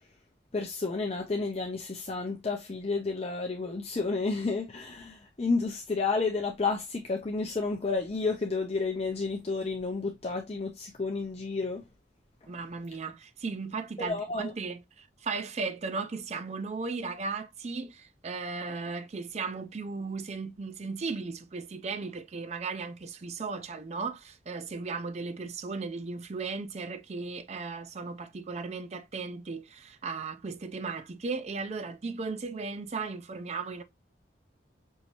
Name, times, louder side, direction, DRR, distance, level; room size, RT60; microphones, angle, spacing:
voice 1, 0.5-11.9 14.0-14.5, left 3 dB, 30° left, 0.6 m, -31 dB
voice 2, 12.5-33.8, right 4 dB, 35° right, 0.4 m, -36 dB
5.4 x 2.7 x 2.8 m
head